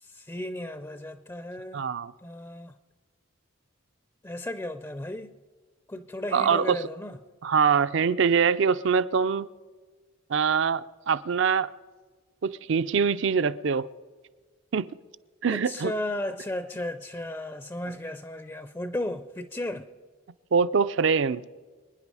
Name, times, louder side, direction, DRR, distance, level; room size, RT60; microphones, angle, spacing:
voice 1, 0.0-1.8 2.2-2.7 4.2-5.3 5.9-7.2 15.5-19.9, left 1 dB, 15° left, 0.4 m, -34 dB
voice 2, 1.7-2.1 6.3-6.8 7.4-9.5 10.3-11.7 12.4-13.9 14.7-14.9 15.4-15.9 20.5-21.4, right 6 dB, 60° right, 0.4 m, -24 dB
25.5 x 10.0 x 4.8 m
head